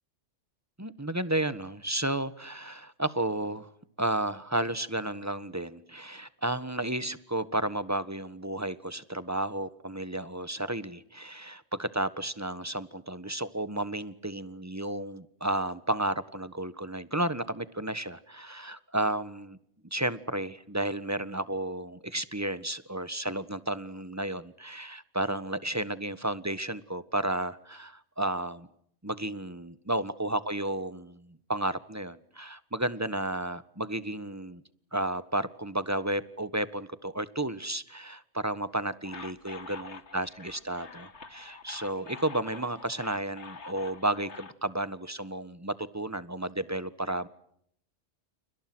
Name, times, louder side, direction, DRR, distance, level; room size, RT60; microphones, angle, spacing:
voice 1, 0.8-3.7 4.0-19.6 19.9-28.7 29.0-34.6 34.9-47.3, right 1 dB, 15° right, 14 dB, 1.4 m, -32 dB
sound 1, 39.0-44.5, left 5 dB, 65° left, 2.0 m, -46 dB
30.0 x 30.0 x 6.2 m, 0.70 s
omnidirectional pair, 1.2 m